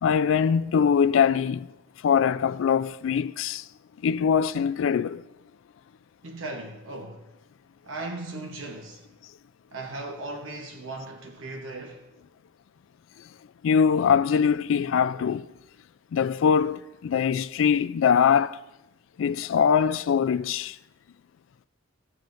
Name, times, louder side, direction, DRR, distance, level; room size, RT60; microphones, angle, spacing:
voice 1, 0.0-1.7 2.0-3.7 4.0-5.2 13.6-15.5 16.1-18.6 19.2-20.8, left 7 dB, 80° left, 0.3 m, -22 dB
voice 2, 6.2-7.3 7.8-9.0 9.7-12.0, right 2 dB, 80° right, 1.0 m, -37 dB
15.5 x 7.4 x 2.6 m
head